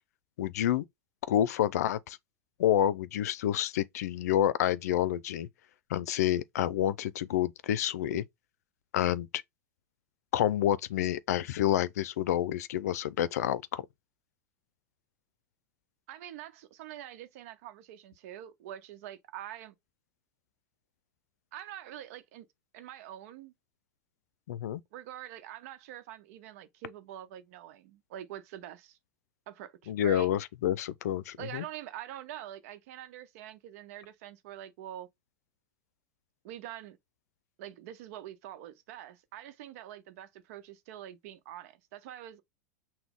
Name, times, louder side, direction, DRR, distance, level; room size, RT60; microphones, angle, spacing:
voice 1, 0.4-0.8 1.3-2.2 2.6-5.5 5.9-8.2 8.9-9.3 10.3-13.9 24.5-24.8 29.9-31.6, left 11 dB, 75° left, 0.5 m, -28 dB
voice 2, 16.1-19.8 21.5-22.5 22.7-23.5 24.9-29.0 29.5-30.3 31.4-35.1 36.4-37.0 37.6-42.4, right 12 dB, 65° right, 0.8 m, -45 dB
6.0 x 2.2 x 3.6 m
hypercardioid pair, 100°, 9 cm